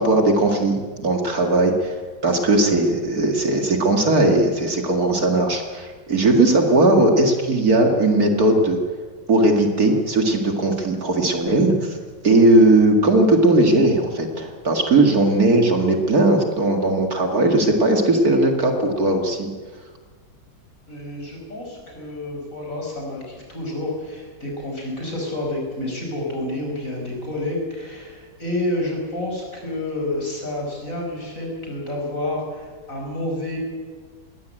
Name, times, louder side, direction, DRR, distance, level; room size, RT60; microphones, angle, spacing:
voice 1, 0.0-8.8 9.3-12.0 12.2-19.5, right 2 dB, 50° right, 4 dB, 2.5 m, -18 dB
voice 2, 20.9-33.6, left 1 dB, 45° left, -1 dB, 6.5 m, -29 dB
20.5 x 17.0 x 9.0 m, 1.5 s
omnidirectional pair, 2.0 m